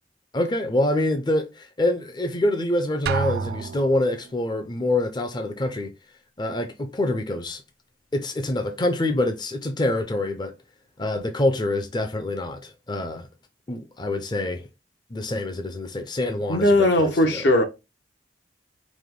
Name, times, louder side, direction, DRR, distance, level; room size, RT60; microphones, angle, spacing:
voice 1, 0.3-5.9 6.4-7.6 8.1-10.5 11.0-13.3 13.7-14.7 15.1-17.5, left 1 dB, 25° left, 0.5 m, -26 dB
Drum, 3.1-4.3, right 6 dB, 60° right, 0.3 m, -29 dB
voice 2, 16.5-17.6, left 1 dB, 65° left, 0.9 m, -18 dB
4.9 x 2.1 x 3.7 m
head